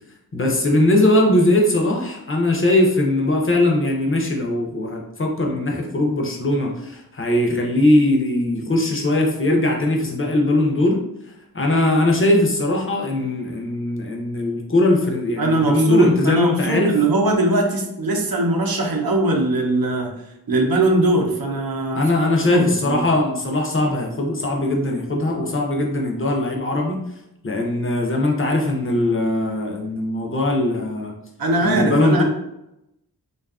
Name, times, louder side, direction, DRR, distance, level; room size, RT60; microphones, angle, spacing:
voice 1, 0.3-11.0 11.5-16.9 21.9-27.0 27.4-31.1 31.6-32.2, left 1 dB, 35° left, 0 dB, 0.5 m, -20 dB
voice 2, 15.4-20.1 20.5-23.1 31.4-32.2, right 2 dB, 65° right, 1 dB, 0.6 m, -20 dB
2.6 x 2.3 x 2.3 m, 0.86 s
wide cardioid pair, 60°, 38 cm